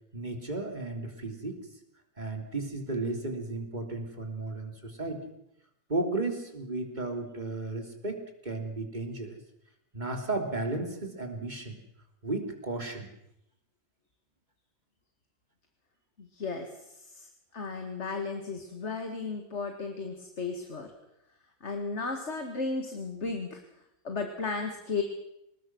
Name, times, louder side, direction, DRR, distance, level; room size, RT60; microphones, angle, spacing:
voice 1, 0.1-1.6 2.2-5.2 5.9-9.4 9.9-11.8 12.2-13.1, right 2 dB, 30° right, 3 dB, 3.4 m, -34 dB
voice 2, 16.2-20.9 21.6-23.6 24.0-25.0, left 4 dB, 55° left, 4 dB, 2.3 m, -35 dB
25.5 x 20.0 x 6.2 m, 0.81 s
omnidirectional pair, 1.4 m